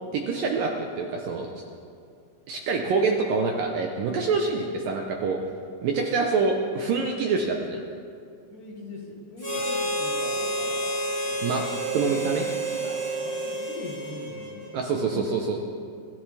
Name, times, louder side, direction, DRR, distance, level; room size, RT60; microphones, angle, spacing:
voice 1, 0.1-1.5 2.5-5.4 5.8-7.8 11.4-11.6 11.9-12.5 14.7-15.6, right 4 dB, 70° right, 2 dB, 2.2 m, -26 dB
voice 2, 8.5-11.6 12.1-15.3, left 2 dB, 55° left, -2 dB, 3.1 m, -42 dB
Harmonica, 9.4-14.9, right 1 dB, 5° right, 2.9 m, -30 dB
26.0 x 13.5 x 3.4 m, 2.3 s
omnidirectional pair, 4.8 m